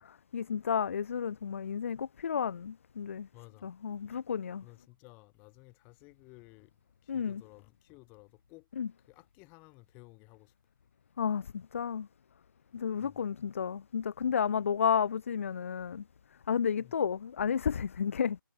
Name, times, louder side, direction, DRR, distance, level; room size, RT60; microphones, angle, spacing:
voice 1, 0.0-3.3 3.6-4.6 7.1-7.4 8.8-8.9 11.2-12.1 12.7-16.0 16.5-18.4, left 7 dB, 35° left, 0.4 m, -32 dB
voice 2, 3.3-4.0 4.6-6.7 7.0-8.7 9.0-10.5 11.8-11.9 13.0-13.2 16.8-16.9, left 26 dB, 15° left, 3.1 m, -56 dB
figure-of-eight pair, 150°, 12 cm